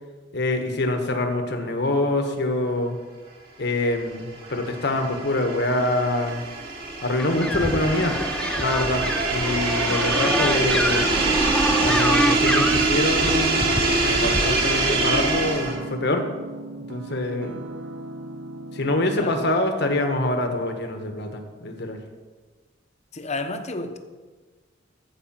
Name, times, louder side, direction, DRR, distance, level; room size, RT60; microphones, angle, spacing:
voice 1, 0.3-3.0 3.6-6.4 7.0-8.2 8.6-11.1 11.8-16.3 16.9-17.6 18.7-22.0, left 2 dB, 65° left, 5 dB, 1.4 m, -25 dB
sound 1, 4.0-15.9, right 3 dB, 55° right, 2.4 m, -24 dB
sound 2, 7.2-14.6, left 1 dB, 5° left, 0.5 m, -27 dB
sound 3, 11.1-19.5, right 2 dB, 90° right, 0.7 m, -37 dB
voice 2, 23.1-24.0, left 2 dB, 40° left, 7 dB, 0.9 m, -31 dB
13.5 x 5.0 x 7.4 m, 1.4 s
head